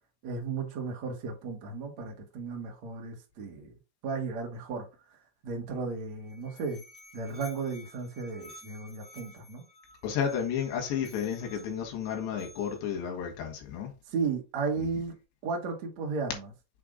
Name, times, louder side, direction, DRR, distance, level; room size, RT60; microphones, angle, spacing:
voice 1, 0.2-3.7 4.0-4.9 5.4-6.8 7.1-9.6 14.1-15.1 15.4-16.5, right 4 dB, 55° right, 2.2 m, -34 dB
Musical instrument, 6.0-12.9, left 2 dB, 75° left, 0.9 m, -53 dB
voice 2, 10.0-13.9, left 8 dB, 90° left, 3.6 m, -32 dB
7.8 x 3.4 x 3.8 m
omnidirectional pair, 4.8 m